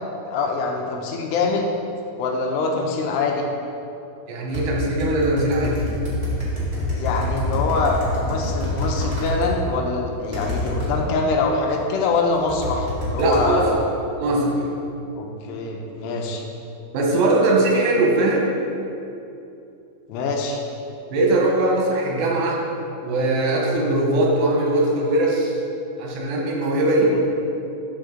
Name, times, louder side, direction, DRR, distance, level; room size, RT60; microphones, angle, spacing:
voice 1, 0.3-1.7 2.2-3.4 6.9-13.7 15.2-16.4 20.1-20.6 27.0-27.2, left 3 dB, 85° left, 1 dB, 2.8 m, -24 dB
voice 2, 4.3-5.8 13.2-13.8 14.2-14.6 16.9-18.5 21.1-22.6 23.0-25.6 26.0-27.2, right 2 dB, 85° right, -2 dB, 3.4 m, -20 dB
sound 1, 4.5-9.5 10.3-10.9 12.3-13.5, left 1 dB, 55° right, 0.7 m, -26 dB
13.0 x 4.7 x 3.8 m, 2.8 s
omnidirectional pair, 4.8 m